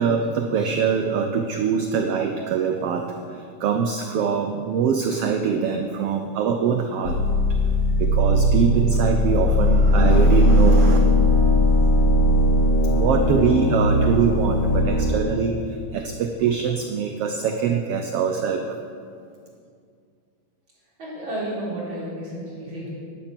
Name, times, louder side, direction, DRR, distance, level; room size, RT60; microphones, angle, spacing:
voice 1, 0.0-7.2 8.0-11.0 12.8-18.8, right 6 dB, 75° right, 5 dB, 1.4 m, -23 dB
sound 1, 7.0-14.9, left 1 dB, 90° left, 3.0 m, -19 dB
Brass instrument, 9.9-15.6, left 2 dB, 65° left, 1.3 m, -26 dB
voice 2, 21.0-22.9, right 1 dB, 40° right, -7 dB, 4.3 m, -31 dB
12.5 x 11.0 x 6.0 m, 2.3 s
omnidirectional pair, 3.4 m